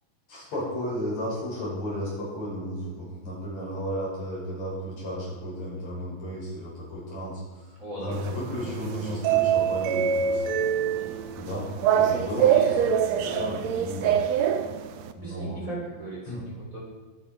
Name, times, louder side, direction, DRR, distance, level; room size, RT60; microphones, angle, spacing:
voice 1, 0.3-10.4 11.4-12.9 13.2-14.2 15.1-15.6 16.3-16.4, equal, 50° left, -5 dB, 7.4 m, -33 dB
voice 2, 7.8-10.2 10.9-11.2 12.4-13.6 14.1-14.3 15.2-16.8, right 2 dB, 20° right, -6 dB, 4.8 m, -40 dB
sound 1, 8.1-15.1, right 8 dB, 75° right, 1.6 m, -25 dB
23.0 x 10.5 x 4.6 m, 1.4 s
omnidirectional pair, 4.1 m